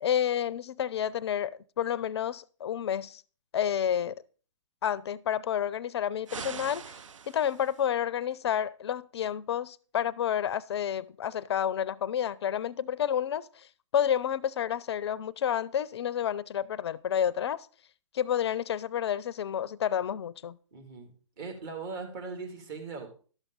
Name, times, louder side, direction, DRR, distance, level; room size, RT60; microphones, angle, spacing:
voice 1, 0.0-3.2 3.5-4.1 4.8-7.0 7.3-13.7 13.9-17.7 18.1-20.6, left 9 dB, 55° left, 0.4 m, -30 dB
sound 1, 6.3-7.9, right 6 dB, 75° right, 0.5 m, -42 dB
voice 2, 20.7-21.1 21.4-23.1, right 4 dB, 40° right, 2.5 m, -39 dB
11.5 x 7.1 x 3.8 m
figure-of-eight pair, 125°, 16 cm